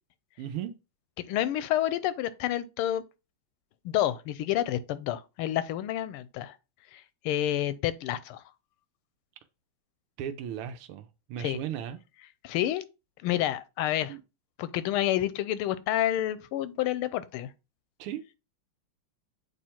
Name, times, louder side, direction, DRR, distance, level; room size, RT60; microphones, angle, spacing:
voice 1, 0.4-0.7 10.2-12.0 14.0-14.2 18.0-18.2, right 10 dB, 85° right, 1.6 m, -36 dB
voice 2, 1.3-3.0 3.8-6.5 6.9-8.4 11.4-11.6 12.4-12.8 13.2-14.2 14.6-17.5, left 12 dB, 85° left, 1.5 m, -29 dB
8.3 x 3.4 x 4.4 m
omnidirectional pair, 2.4 m